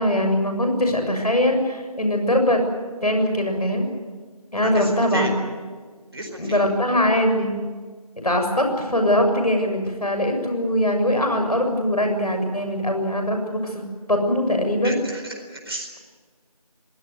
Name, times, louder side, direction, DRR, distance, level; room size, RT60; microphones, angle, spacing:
voice 1, 0.0-2.6 3.0-3.9 4.5-5.3 6.4-7.5 8.2-13.8 14.1-15.0, left 1 dB, 75° left, 5 dB, 7.2 m, -21 dB
voice 2, 4.5-5.3 6.1-6.7 14.8-16.0, right 1 dB, 40° right, 1 dB, 4.4 m, -32 dB
24.0 x 19.5 x 9.6 m, 1.5 s
figure-of-eight pair, 180°, 20 cm